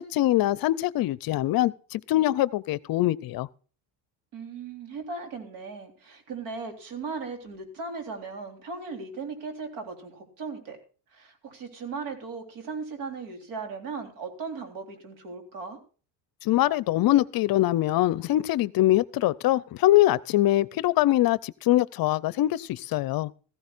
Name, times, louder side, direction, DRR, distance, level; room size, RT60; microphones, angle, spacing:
voice 1, 0.0-3.5 16.4-23.3, left 15 dB, 45° left, 0.5 m, -23 dB
voice 2, 4.3-10.8 11.1-15.8, right 4 dB, 80° right, 3.8 m, -37 dB
15.0 x 15.0 x 2.5 m
cardioid pair, 125°, 49 cm